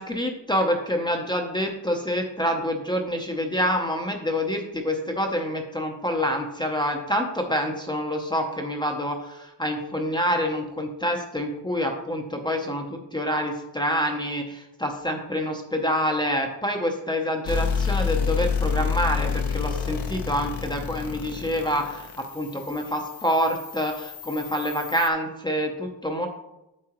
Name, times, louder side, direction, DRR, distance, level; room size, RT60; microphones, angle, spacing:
voice 1, 0.0-26.3, equal, 10° left, 2 dB, 0.5 m, -27 dB
sound 1, 17.4-25.1, left 6 dB, 90° left, 1.1 m, -29 dB
8.5 x 8.3 x 2.9 m, 0.93 s
cardioid pair, 175°, 46 cm